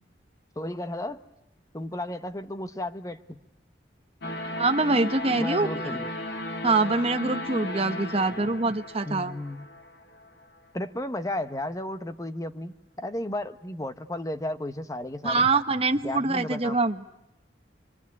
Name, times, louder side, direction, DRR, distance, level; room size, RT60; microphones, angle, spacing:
voice 1, 0.6-1.2 1.7-3.4 5.4-6.1 9.0-9.7 10.7-15.5 16.0-16.8, left 1 dB, 20° left, 10 dB, 1.0 m, -34 dB
sound 1, 4.2-10.3, left 1 dB, 65° left, 2.5 m, -35 dB
voice 2, 4.6-5.7 6.6-9.3 15.2-17.0, right 3 dB, 35° right, 6 dB, 1.2 m, -24 dB
24.5 x 24.5 x 9.6 m, 0.87 s
head